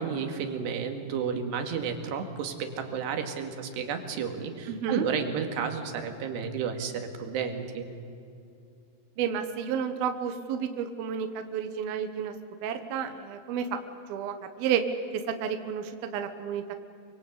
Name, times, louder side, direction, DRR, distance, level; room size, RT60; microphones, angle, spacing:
voice 1, 0.0-7.9, right 6 dB, 85° right, 6 dB, 4.2 m, -32 dB
voice 2, 4.7-5.0 9.2-12.3 12.6-13.8 14.1-14.8 15.3-16.8, right 8 dB, 70° right, 7 dB, 3.0 m, -31 dB
27.0 x 24.5 x 8.5 m, 2.5 s
omnidirectional pair, 4.7 m